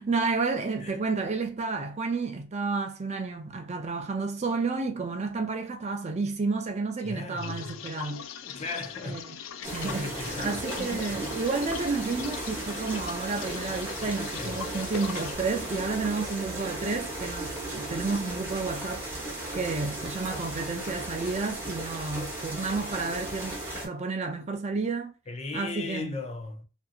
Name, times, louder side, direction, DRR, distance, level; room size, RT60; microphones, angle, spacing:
voice 1, 0.0-8.3 9.0-9.4 9.7-19.2 19.5-25.1 25.5-26.2, right 4 dB, 35° right, 0.5 m, -31 dB
voice 2, 7.0-7.8 8.4-9.2 9.8-11.2 14.4-14.7 25.3-26.6, left 3 dB, 35° left, 0.5 m, -37 dB
sound 1, 7.4-15.3, left 8 dB, 90° left, 0.3 m, -41 dB
sound 2, 9.6-23.9, right 1 dB, 10° right, 1.0 m, -36 dB
2.6 x 2.6 x 2.5 m
head